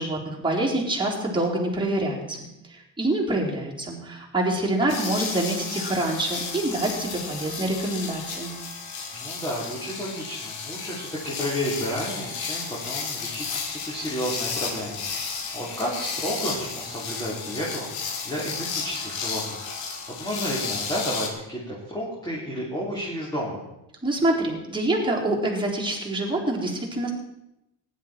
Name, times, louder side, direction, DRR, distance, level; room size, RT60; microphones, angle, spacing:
voice 1, 0.0-8.5 24.0-27.1, right 1 dB, 10° right, -3 dB, 3.9 m, -26 dB
sound 1, 4.9-21.3, left 5 dB, 80° left, 2.7 m, -33 dB
voice 2, 9.1-23.6, equal, 10° left, -6 dB, 3.8 m, -32 dB
16.0 x 11.0 x 4.5 m, 0.87 s
cardioid pair, 110°, 45 cm